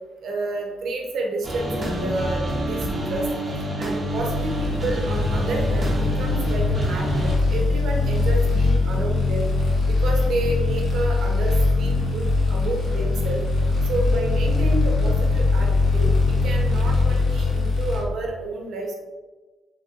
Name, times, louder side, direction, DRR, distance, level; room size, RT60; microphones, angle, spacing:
voice 1, 0.2-2.8 3.1-3.3 3.8-9.5 9.9-13.4 13.8-18.9, right 2 dB, 70° right, 1 dB, 0.6 m, -30 dB
sound 1, 1.4-7.4, equal, 30° right, 0.7 m, -27 dB
sound 2, 4.2-18.0, left 3 dB, 55° left, 0.9 m, -22 dB
3.2 x 2.6 x 2.4 m, 1.3 s
cardioid pair, 90°, 0 cm